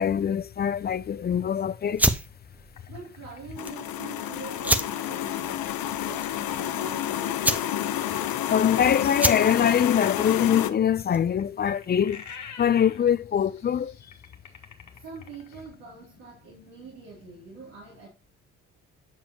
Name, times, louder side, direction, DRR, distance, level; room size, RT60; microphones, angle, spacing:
voice 1, 0.0-2.1 8.5-12.2 12.6-13.9, left 8 dB, 30° left, 0.4 m, -23 dB
sound 1, 1.9-11.4, right 1 dB, 5° right, 0.8 m, -30 dB
sound 2, 2.8-6.8 9.7-15.8, left 6 dB, 50° left, 1.5 m, -47 dB
voice 2, 2.9-7.4 14.9-18.1, right 5 dB, 80° right, 2.7 m, -44 dB
sound 3, 3.6-10.7, left 11 dB, 65° left, 0.8 m, -29 dB
7.0 x 6.9 x 2.8 m
hypercardioid pair, 50°, 37 cm